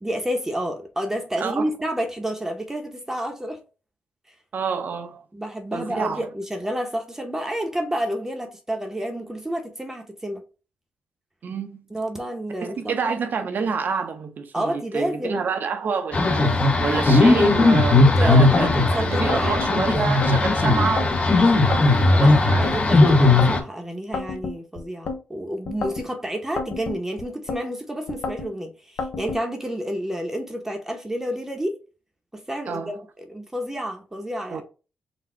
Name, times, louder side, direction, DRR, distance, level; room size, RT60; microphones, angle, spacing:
voice 1, 0.0-3.6 5.3-10.4 11.9-12.9 14.5-15.4 18.0-19.6 22.2-31.7 32.3-34.6, equal, 10° right, 0.9 m, -30 dB
voice 2, 4.5-5.2 5.7-6.2 11.4-11.8 12.6-21.9 22.1-22.8 32.7-33.0 34.5-34.6, right 5 dB, 60° right, 0.9 m, -28 dB
sound 1, 16.1-23.6, left 2 dB, 35° left, 0.9 m, -17 dB
sound 2, 18.4-18.8 19.3-20.3 20.8-21.2 21.7-22.8 23.2-23.6 24.1-25.2 25.7-26.1 26.6-27.6 28.1-28.5 29.0-29.4, left 4 dB, 70° left, 0.8 m, -31 dB
4.2 x 2.3 x 4.4 m
cardioid pair, 90°, 4 cm